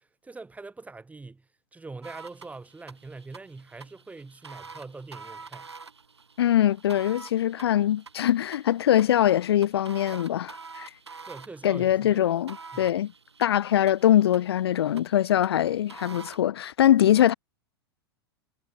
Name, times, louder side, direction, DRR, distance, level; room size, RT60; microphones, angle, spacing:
voice 1, 0.0-5.7 11.2-12.3 12.7-12.9, right 3 dB, 10° right, 7.8 m, -43 dB
sound 1, 2.0-16.4, right 5 dB, 85° right, 4.8 m, -47 dB
voice 2, 6.4-10.9 11.6-13.1 13.4-17.3, left 11 dB, 70° left, 0.4 m, -22 dB
figure-of-eight pair, 95°, 14 cm